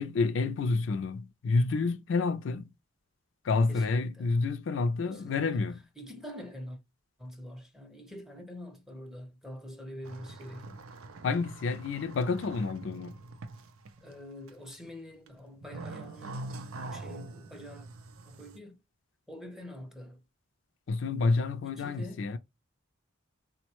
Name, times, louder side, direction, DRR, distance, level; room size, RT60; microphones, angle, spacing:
voice 1, 0.0-2.7 3.4-5.8 11.2-13.2 20.9-22.4, left 3 dB, 60° left, 0.4 m, -29 dB
voice 2, 3.7-4.3 5.0-5.6 6.0-6.8 7.2-10.8 14.0-16.5 16.9-17.9 18.3-18.8 19.3-20.2 21.6-22.3, equal, ahead, 0.6 m, -45 dB
sound 1, 10.0-14.2 14.5-14.9 15.3-18.6, right 2 dB, 90° right, 0.5 m, -44 dB
3.9 x 2.0 x 2.9 m
head